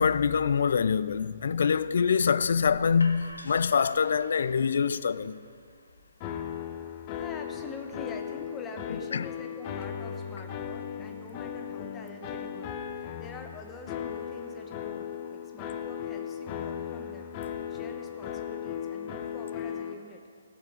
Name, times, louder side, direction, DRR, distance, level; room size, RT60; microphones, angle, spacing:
voice 1, 0.0-5.5 9.1-9.3, left 6 dB, 60° left, 0.3 m, -25 dB
sound 1, 2.5-8.3, left 2 dB, 80° left, 0.8 m, -49 dB
sound 2, 6.2-19.9, left 8 dB, 30° left, 0.6 m, -37 dB
voice 2, 7.1-17.3 17.7-20.2, left 3 dB, 15° left, 1.1 m, -45 dB
17.0 x 6.7 x 5.2 m
figure-of-eight pair, 125°, 0 cm